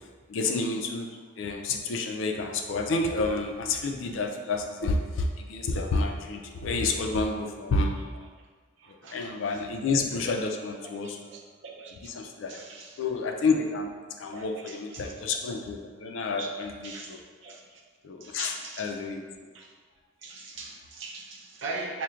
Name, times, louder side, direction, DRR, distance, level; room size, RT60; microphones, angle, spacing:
voice 1, 0.3-8.0 9.1-11.2 11.9-12.6 13.0-13.9 14.2-17.2 18.0-19.2, left 3 dB, 80° left, 3 dB, 0.4 m, -29 dB
voice 2, 8.8-9.3 10.8-10.9 11.3-12.1 12.5-12.9 14.3-15.1 16.4-16.5 16.8-17.1 17.4-17.6 18.2-18.9 19.5-19.7 20.2-22.0, right 3 dB, 70° right, -1 dB, 0.6 m, -40 dB
5.5 x 2.2 x 2.5 m, 1.5 s
head